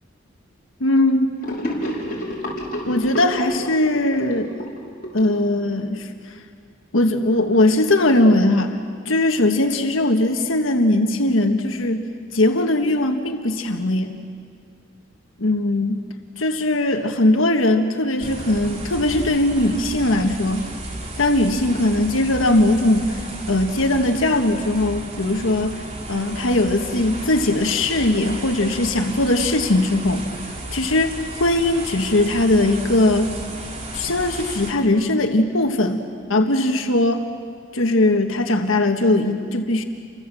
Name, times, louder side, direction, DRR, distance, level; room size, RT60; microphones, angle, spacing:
voice 1, 0.8-1.3 2.9-4.5 5.1-6.1 6.9-8.8 9.0-12.0 12.3-14.2 15.4-16.0 16.4-20.7 21.2-23.2 23.5-25.7 26.1-30.3 30.7-33.3 33.9-36.0 36.3-37.3 37.7-39.8, left 1 dB, 85° left, 5 dB, 1.5 m, -19 dB
Gurgling / Sink (filling or washing), 1.4-5.9, equal, 45° left, 5.3 m, -30 dB
sound 1, 18.2-34.7, right 1 dB, 35° right, 3.3 m, -34 dB
29.5 x 25.5 x 7.6 m, 2.2 s
head